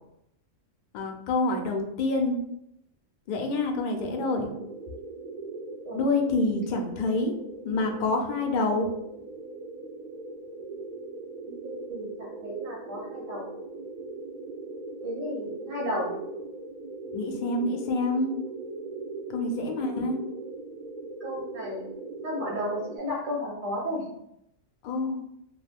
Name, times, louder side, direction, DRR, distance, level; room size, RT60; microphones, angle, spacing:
voice 1, 0.9-2.4 3.3-4.5 5.9-7.3 7.6-8.9 17.1-18.3 19.3-20.2 24.8-25.2, left 2 dB, 70° left, 3 dB, 0.5 m, -27 dB
sound 1, 4.0-23.0, right 3 dB, 75° right, 0.4 m, -40 dB
voice 2, 11.6-13.5 15.0-16.1 21.2-21.9 22.2-24.0, equal, 50° right, -3 dB, 0.8 m, -33 dB
2.3 x 2.3 x 3.4 m, 0.78 s
omnidirectional pair, 1.4 m